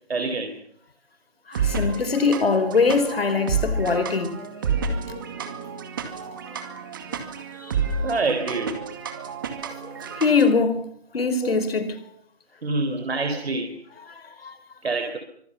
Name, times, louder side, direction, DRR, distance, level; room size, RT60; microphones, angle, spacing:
voice 1, 0.1-0.5 8.0-8.8 11.4-11.6 12.6-13.8 14.8-15.2, right 3 dB, 70° right, 4.1 m, -26 dB
voice 2, 1.5-4.4 5.1-5.2 7.6-7.7 10.2-10.9 11.1-11.9 14.1-14.6, left 4 dB, 65° left, 4.5 m, -22 dB
sound 1, 1.5-10.5, right 5 dB, 20° right, 2.2 m, -30 dB
25.5 x 23.0 x 7.1 m
hypercardioid pair, 180°, 32 cm